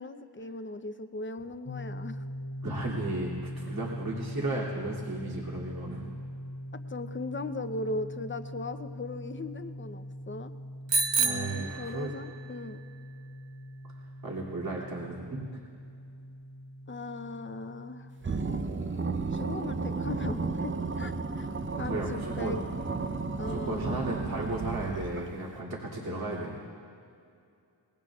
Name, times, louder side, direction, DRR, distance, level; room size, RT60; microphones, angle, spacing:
voice 1, 0.0-2.2 6.7-10.5 11.2-12.8 16.9-18.1 19.3-21.5 21.8-22.6 23.4-24.1, left 2 dB, 25° left, 8 dB, 0.7 m, -38 dB
sound 1, 1.6-20.3, equal, 85° left, 2.2 m, -42 dB
voice 2, 2.6-6.1 11.2-12.1 14.2-15.6 21.5-22.7 23.4-26.6, right 2 dB, 55° right, -5 dB, 2.8 m, -35 dB
Bicycle bell, 10.9-12.5, right 4 dB, 80° right, 0.8 m, -29 dB
sound 2, 18.2-25.5, right 4 dB, 25° right, 0.7 m, -33 dB
24.5 x 20.5 x 2.4 m, 2.4 s
wide cardioid pair, 80°, 43 cm